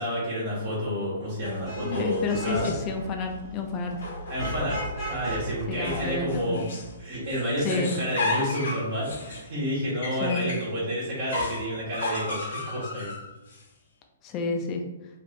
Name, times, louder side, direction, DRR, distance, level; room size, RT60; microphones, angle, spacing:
voice 1, 0.0-2.7 4.3-6.6 7.0-13.1, equal, 45° right, -7 dB, 1.3 m, -30 dB
sound 1, 1.4-3.0 3.9-5.2 5.8-7.0 7.3-10.7 11.3-13.6, left 3 dB, 55° left, 0.8 m, -35 dB
Vehicle horn car horn honking / Traffic noise roadway noise, 1.4-6.7, right 2 dB, 25° right, 1.5 m, -39 dB
voice 2, 1.8-3.9 5.7-6.7 7.6-7.9 10.2-10.5 14.2-14.8, left 4 dB, 25° left, 3 dB, 0.5 m, -30 dB
sound 2, 4.4-7.7 8.2-8.3, equal, 90° left, 0.5 m, -38 dB
3.4 x 2.4 x 3.1 m, 1.0 s
figure-of-eight pair, 120°, 0 cm